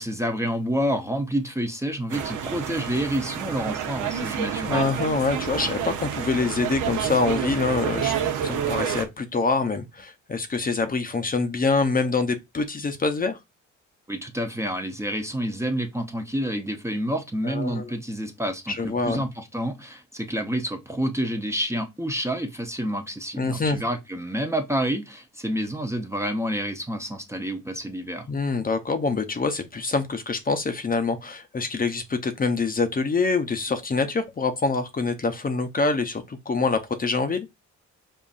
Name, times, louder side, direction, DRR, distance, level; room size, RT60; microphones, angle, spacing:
voice 1, 0.0-4.9 14.1-28.3, equal, 10° right, 0.6 m, -28 dB
sound 1, 2.1-9.0, right 8 dB, 80° right, 0.8 m, -29 dB
voice 2, 4.7-8.1 8.4-13.4 17.4-17.9 18.7-19.2 23.4-23.8 28.3-37.5, left 4 dB, 30° left, 0.7 m, -25 dB
5.5 x 2.5 x 2.5 m
cardioid pair, 90°, 30 cm